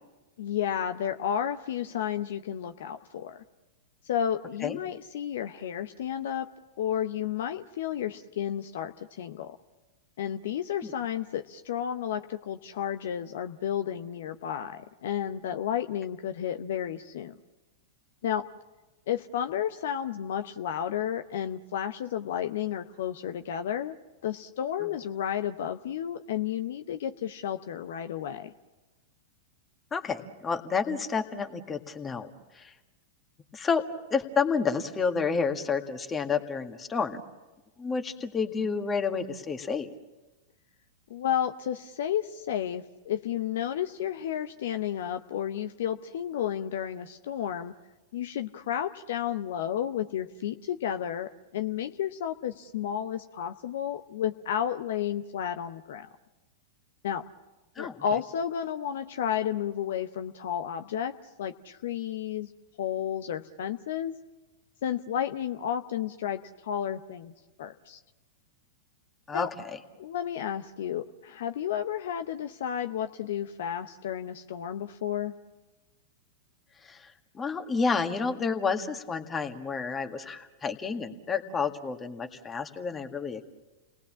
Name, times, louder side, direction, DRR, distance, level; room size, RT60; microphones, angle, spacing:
voice 1, 0.4-3.4 4.0-6.5 6.8-9.6 10.2-17.3 18.2-18.5 19.1-24.0 24.2-28.5 41.1-47.7 48.1-56.1 57.0-57.2 57.8-62.5 62.8-64.1 64.8-67.3 67.6-68.0 69.3-69.5 70.0-75.3, left 9 dB, 60° left, 8 dB, 0.7 m, -32 dB
voice 2, 29.9-32.3 32.6-32.7 33.5-33.8 34.1-37.2 37.8-39.9 57.8-58.0 69.3-69.8 76.8-77.1 77.3-83.4, left 5 dB, 20° left, 6 dB, 1.8 m, -30 dB
29.5 x 19.5 x 7.5 m, 1.2 s
figure-of-eight pair, 100°, 0 cm